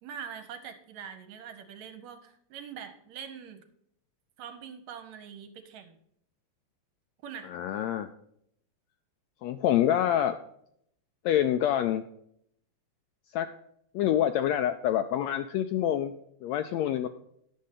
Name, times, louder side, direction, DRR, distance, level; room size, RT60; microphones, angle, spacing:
voice 1, 0.0-3.6 4.4-6.0 7.2-7.5, right 7 dB, 70° right, 8 dB, 2.0 m, -43 dB
voice 2, 7.5-8.1 9.4-10.3 11.2-12.0 13.3-13.5 13.9-16.1 16.4-17.1, left 11 dB, 80° left, 9 dB, 1.6 m, -26 dB
10.5 x 6.3 x 5.7 m, 0.70 s
omnidirectional pair, 3.5 m